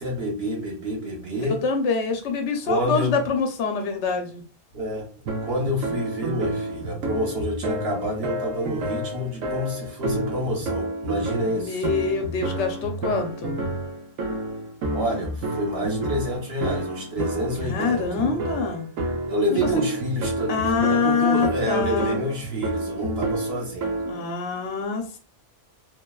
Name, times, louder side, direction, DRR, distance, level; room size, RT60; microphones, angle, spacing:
voice 1, 0.0-1.6 2.7-3.2 4.7-5.1 5.4-11.8 14.9-18.3 19.3-20.6 20.9-24.0, equal, 55° right, 0 dB, 1.0 m, -28 dB
voice 2, 1.6-4.4 11.5-13.6 17.6-18.9 19.5-19.7 20.5-22.2 24.1-25.2, left 5 dB, 65° left, 4 dB, 0.9 m, -25 dB
sound 1, 5.3-24.3, right 2 dB, 90° right, 1.0 m, -30 dB
3.1 x 2.1 x 2.2 m, 0.36 s
omnidirectional pair, 1.3 m